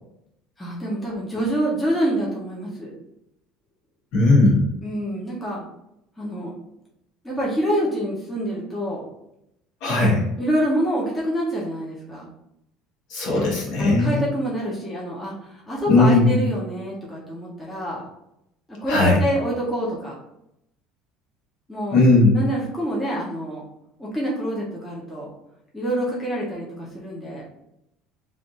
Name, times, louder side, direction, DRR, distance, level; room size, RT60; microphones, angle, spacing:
voice 1, 0.6-2.9 4.8-5.7 6.2-6.5 7.2-9.0 10.4-12.3 13.3-13.4 13.8-18.0 18.8-20.2 21.7-23.6 24.0-25.3 25.7-27.4, right 1 dB, 5° left, -6 dB, 0.8 m, -26 dB
voice 2, 4.1-4.6 9.8-10.2 13.1-14.3 15.9-16.4 18.9-19.2 21.9-22.3, left 2 dB, 55° left, -3 dB, 1.3 m, -17 dB
3.3 x 2.5 x 4.0 m, 0.81 s
cardioid pair, 165°, 0 cm